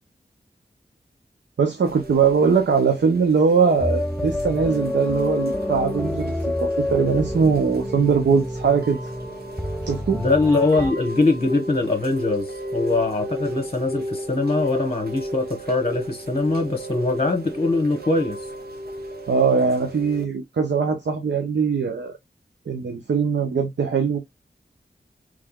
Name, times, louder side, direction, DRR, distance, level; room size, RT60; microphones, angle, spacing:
voice 1, 1.6-9.0 9.8-10.2 19.3-22.1 22.7-24.2, right 5 dB, 90° right, 0.7 m, -21 dB
Chime / Rain, 1.8-20.2, right 1 dB, 60° right, 1.0 m, -34 dB
sound 1, 3.8-10.9, left 1 dB, 5° left, 0.5 m, -28 dB
voice 2, 10.1-18.5, left 3 dB, 35° left, 1.1 m, -22 dB
3.6 x 3.2 x 2.3 m
wide cardioid pair, 55°, 18 cm